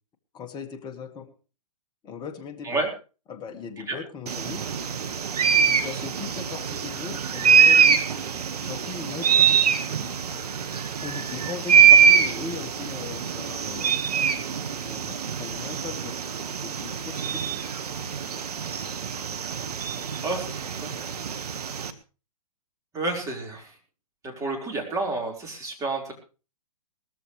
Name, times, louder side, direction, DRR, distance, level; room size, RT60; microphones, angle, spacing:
voice 1, 0.3-1.3 2.0-2.8 3.3-4.6 5.7-8.0 8.6-9.6 10.8-14.1 14.8-16.2 16.5-17.4, left 6 dB, 20° left, 4 dB, 1.9 m, -39 dB
sound 1, 4.3-21.9, right 7 dB, 70° right, 1.6 m, -23 dB
voice 2, 22.9-23.7 24.2-26.1, right 2 dB, 15° right, 0 dB, 4.7 m, -29 dB
20.0 x 14.0 x 3.3 m, 0.34 s
hypercardioid pair, 130°, 20 cm